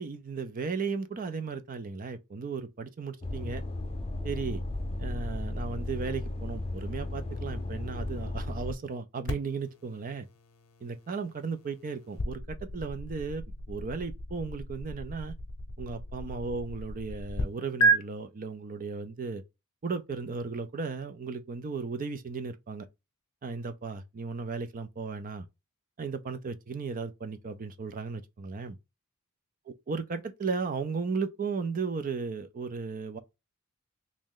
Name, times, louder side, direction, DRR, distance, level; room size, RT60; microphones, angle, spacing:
voice 1, 0.0-3.6 4.2-4.6 5.0-10.3 10.8-15.4 15.8-19.4 19.8-22.9 23.4-25.5 26.0-28.8 29.9-33.2, right 4 dB, 40° right, 0.4 m, -35 dB
sound 1, 3.2-8.7, left 2 dB, 25° left, 0.6 m, -35 dB
sound 2, 9.3-17.4 17.8-18.0, right 2 dB, 85° left, 0.8 m, -33 dB
3.1 x 2.7 x 3.7 m
head